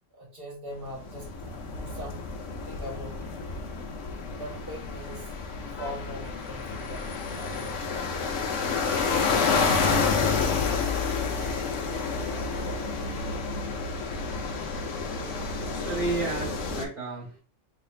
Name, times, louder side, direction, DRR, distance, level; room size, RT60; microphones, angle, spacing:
voice 1, 0.1-2.2 2.6-3.3 4.3-5.3 5.7-8.1, equal, 50° right, -2 dB, 2.0 m, -41 dB
sound 1, 0.9-16.9, left 4 dB, 85° left, 1.0 m, -29 dB
voice 2, 12.1-13.1 15.5-17.4, right 3 dB, 70° right, -3 dB, 1.2 m, -34 dB
4.1 x 2.9 x 2.4 m, 0.35 s
omnidirectional pair, 1.2 m